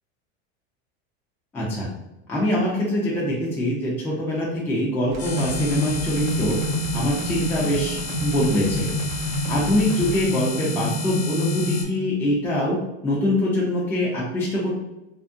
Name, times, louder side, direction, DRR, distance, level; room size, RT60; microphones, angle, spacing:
voice 1, 1.5-1.9 2.3-6.6 6.9-8.9 9.5-14.7, left 1 dB, 5° left, -4 dB, 0.4 m, -24 dB
sound 1, 5.1-10.2, right 3 dB, 85° right, 0.5 m, -37 dB
sound 2, 5.2-11.8, left 1 dB, 75° left, 0.9 m, -27 dB
2.6 x 2.4 x 2.5 m, 0.97 s
supercardioid pair, 150°, 32 cm